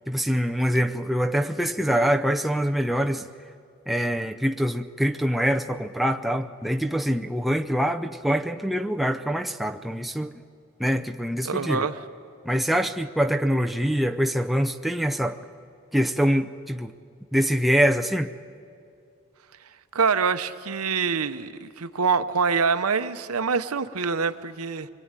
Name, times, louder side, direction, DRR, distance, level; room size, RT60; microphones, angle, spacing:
voice 1, 0.1-3.3 3.9-10.3 10.8-11.9 12.4-15.4 15.9-16.9 17.3-18.3, equal, ahead, 0.6 m, -24 dB
voice 2, 11.4-12.0 19.9-24.9, right 5 dB, 75° right, 0.9 m, -25 dB
23.5 x 23.0 x 9.0 m
head